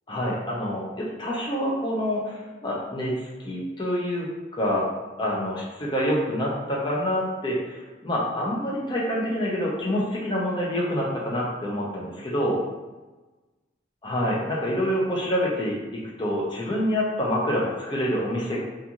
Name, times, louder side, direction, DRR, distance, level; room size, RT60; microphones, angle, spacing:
voice 1, 0.1-3.1 3.4-4.9 5.2-12.6 14.0-15.8 16.2-18.6, equal, 25° left, -4 dB, 0.6 m, -27 dB
2.4 x 2.4 x 2.8 m, 1.2 s
head